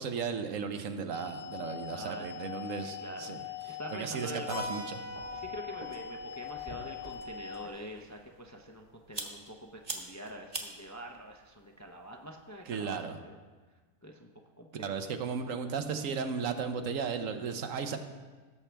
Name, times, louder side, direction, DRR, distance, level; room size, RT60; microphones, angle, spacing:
voice 1, 0.0-3.4 3.7-5.0 12.7-13.2 14.7-18.0, right 6 dB, 80° right, 7 dB, 1.2 m, -35 dB
sound 1, 1.1-7.7, left 9 dB, 75° left, 0.9 m, -42 dB
voice 2, 1.9-2.3 2.6-4.5 5.3-13.4 14.0-14.3 14.6-14.9, right 1 dB, 20° left, 2 dB, 0.4 m, -45 dB
sound 2, 3.4-12.7, right 2 dB, 30° right, 1.2 m, -47 dB
Keyboard (musical), 4.5-8.9, left 1 dB, 90° left, 3.9 m, -46 dB
17.0 x 7.3 x 3.4 m, 1.4 s
omnidirectional pair, 1.3 m